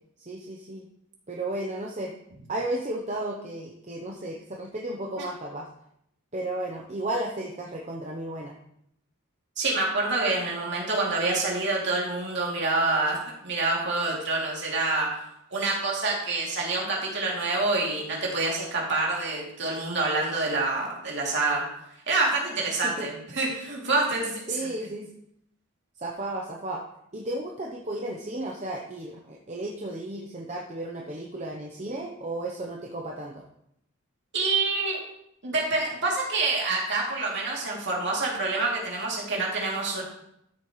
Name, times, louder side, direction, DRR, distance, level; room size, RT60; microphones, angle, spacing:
voice 1, 0.2-0.9 1.3-2.1 2.5-5.7 6.3-8.6 22.8-23.1 24.5-25.1 26.0-26.8 27.1-33.4, right 1 dB, 30° right, -1 dB, 0.8 m, -34 dB
voice 2, 9.6-21.6 22.1-24.6 34.3-35.0 35.4-40.0, right 3 dB, 50° right, -3 dB, 2.8 m, -27 dB
13.0 x 7.1 x 3.2 m, 0.75 s
head